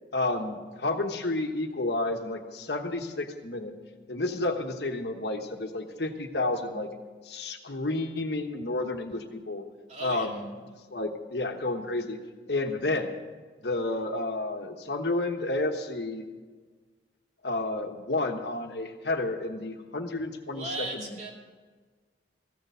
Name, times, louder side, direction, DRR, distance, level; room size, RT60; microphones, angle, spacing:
voice 1, 0.1-3.7 4.1-6.9 7.2-9.6 10.0-10.5 10.9-12.2 12.5-13.1 13.6-16.2 17.4-21.1, left 2 dB, 65° left, 5 dB, 1.2 m, -31 dB
voice 2, 9.9-10.4 20.5-21.3, right 2 dB, 40° right, 0 dB, 2.5 m, -37 dB
15.0 x 6.8 x 9.2 m, 1.5 s
head